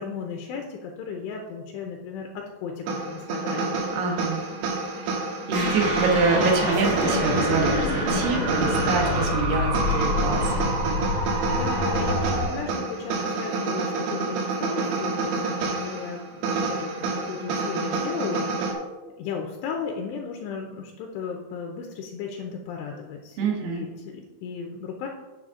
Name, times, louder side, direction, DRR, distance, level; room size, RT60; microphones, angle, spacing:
voice 1, 0.0-3.8 5.3-5.5 11.3-18.8 19.2-25.1, left 6 dB, 80° left, 2 dB, 2.7 m, -35 dB
sound 1, 2.9-18.7, right 3 dB, 80° right, 3.7 m, -28 dB
voice 2, 3.9-4.4 4.9-5.1 5.5-11.0 23.4-23.8, right 4 dB, 65° right, 1 dB, 2.4 m, -26 dB
sound 2, 5.5-12.4, left 1 dB, 50° right, 3.6 m, -26 dB
8.7 x 7.3 x 3.7 m, 1.2 s
omnidirectional pair, 5.4 m